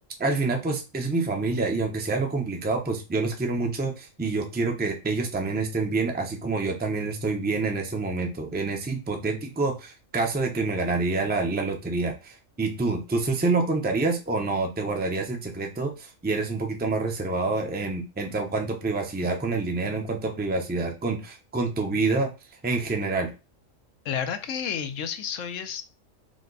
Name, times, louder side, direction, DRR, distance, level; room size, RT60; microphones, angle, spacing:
voice 1, 0.2-22.3 22.6-23.3, right 3 dB, 10° right, 3 dB, 0.5 m, -27 dB
voice 2, 24.0-25.8, left 7 dB, 75° left, 9 dB, 1.0 m, -31 dB
4.9 x 2.2 x 3.9 m, 0.29 s
omnidirectional pair, 1.4 m